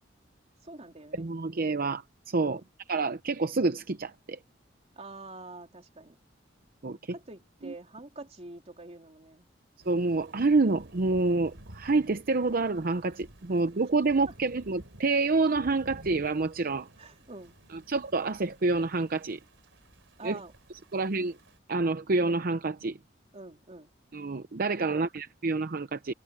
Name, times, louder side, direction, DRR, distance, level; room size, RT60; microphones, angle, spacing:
voice 1, 0.6-1.3 2.4-2.6 5.0-6.1 7.1-9.5 13.5-13.6 14.3-14.4 17.0-17.6 20.2-20.5 23.3-23.9 24.8-25.1, right 2 dB, 35° right, 3.4 m, -46 dB
voice 2, 1.2-2.6 2.9-4.4 6.8-7.1 7.6-7.7 9.9-16.9 17.9-19.4 20.2-20.4 20.9-21.4 21.7-23.0 24.1-26.1, right 3 dB, 50° right, 0.7 m, -28 dB
Thunder / Rain, 9.8-21.6, right 1 dB, 85° right, 3.6 m, -53 dB
head